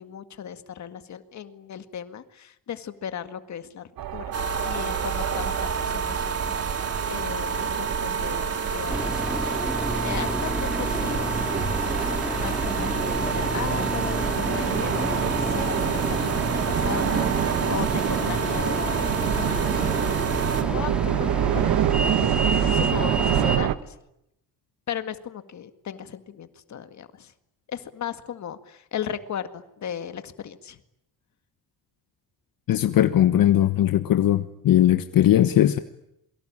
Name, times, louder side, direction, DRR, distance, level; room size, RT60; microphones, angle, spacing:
voice 1, 0.0-3.8 4.1-4.4 4.6-9.3 10.0-11.8 12.3-19.9 20.5-22.0 22.3-22.4 22.7-23.9 24.9-27.3 27.7-30.8, left 8 dB, 50° left, 10 dB, 2.0 m, -36 dB
sound 1, 4.0-23.8, right 11 dB, 65° right, 1.4 m, -28 dB
sound 2, 4.3-20.6, right 5 dB, 40° right, 3.7 m, -29 dB
sound 3, 8.9-23.6, equal, 5° right, 2.6 m, -30 dB
voice 2, 32.7-35.8, left 12 dB, 65° left, 10 dB, 1.3 m, -19 dB
28.0 x 23.5 x 8.8 m, 0.82 s
cardioid pair, 160°, 37 cm